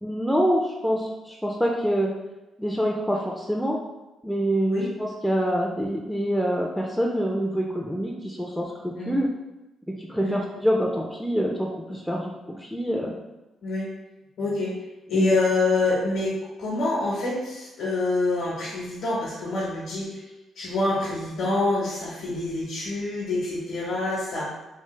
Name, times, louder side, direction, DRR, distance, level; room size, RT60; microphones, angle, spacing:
voice 1, 0.0-2.1 2.6-3.8 4.2-9.3 10.0-13.1 15.1-15.3, equal, ahead, -1 dB, 0.3 m, -26 dB
voice 2, 14.4-14.7 15.1-20.1 20.6-24.5, left 2 dB, 75° left, -5 dB, 0.8 m, -26 dB
3.2 x 2.0 x 3.1 m, 1.0 s
cardioid pair, 110°, 0 cm